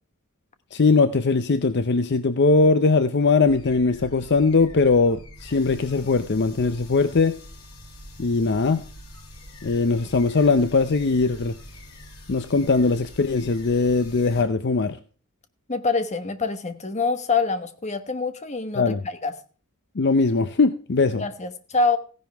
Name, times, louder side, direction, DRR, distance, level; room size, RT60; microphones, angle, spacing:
voice 1, 0.7-7.4 8.2-8.8 9.6-11.6 12.3-15.0 18.8-19.0 20.0-21.2, left 4 dB, 50° left, 0.6 m, -20 dB
sound 1, 3.4-14.4, equal, 85° left, 5.6 m, -44 dB
voice 2, 15.7-19.3 21.1-22.0, left 4 dB, 30° left, 1.1 m, -25 dB
15.5 x 10.5 x 3.4 m
head